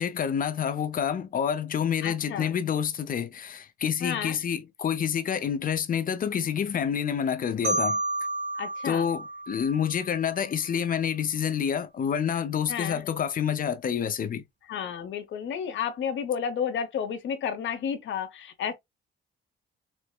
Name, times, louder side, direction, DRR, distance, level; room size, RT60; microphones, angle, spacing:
voice 1, 0.0-8.0 8.8-14.4, left 8 dB, 45° left, 0.5 m, -28 dB
voice 2, 2.0-2.5 4.0-4.4 8.6-9.1 12.7-13.0 14.7-18.7, left 7 dB, 70° left, 0.9 m, -31 dB
Marimba xylophone, 7.6-10.5, right 2 dB, 60° right, 1.4 m, -31 dB
4.5 x 2.1 x 2.2 m
cardioid pair, 90°, 20 cm